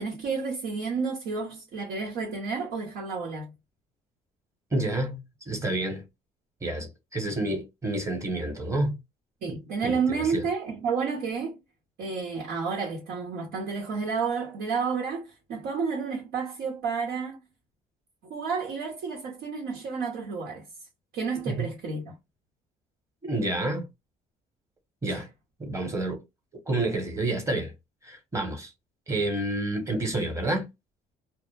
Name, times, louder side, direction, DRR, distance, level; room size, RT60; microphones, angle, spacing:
voice 1, 0.0-3.5 9.4-11.6 12.0-17.4 18.2-20.6 21.1-22.1 25.1-25.2, right 5 dB, 80° right, 1.0 m, -30 dB
voice 2, 4.7-6.0 6.6-9.0 9.5-10.0 10.3-10.4 21.5-21.6 23.2-23.9 25.0-25.3 25.6-26.2 26.7-27.7 28.0-28.7 29.1-30.7, right 2 dB, 15° right, 1.0 m, -29 dB
2.2 x 2.0 x 3.1 m
cardioid pair, 110°, 17 cm